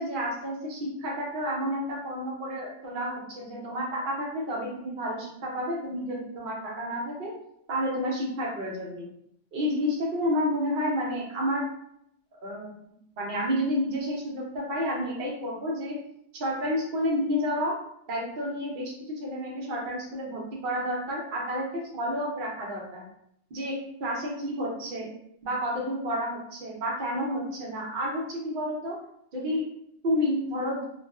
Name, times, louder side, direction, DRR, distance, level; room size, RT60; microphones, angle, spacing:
voice 1, 0.0-7.3 7.7-9.1 9.5-11.7 12.4-12.7 13.2-16.0 16.3-17.7 18.1-21.7 21.9-23.1 23.5-25.1 25.4-29.0 29.3-29.7 30.0-30.9, equal, 50° right, -2 dB, 0.6 m, -30 dB
2.5 x 2.3 x 2.2 m, 0.72 s
omnidirectional pair, 1.6 m